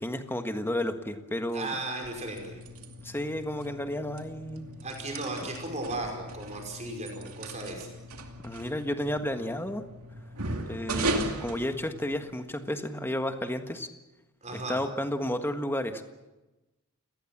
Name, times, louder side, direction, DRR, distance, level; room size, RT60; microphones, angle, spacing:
voice 1, 0.0-1.7 3.0-4.7 8.4-9.8 10.7-13.9 14.5-16.0, left 1 dB, 10° left, 7 dB, 1.5 m, -32 dB
voice 2, 1.5-2.6 4.8-7.9 14.4-14.8, right 2 dB, 30° right, 2 dB, 5.4 m, -36 dB
sound 1, 1.9-12.4, right 2 dB, 80° right, 2.5 m, -37 dB
29.5 x 18.5 x 7.4 m, 1.1 s
head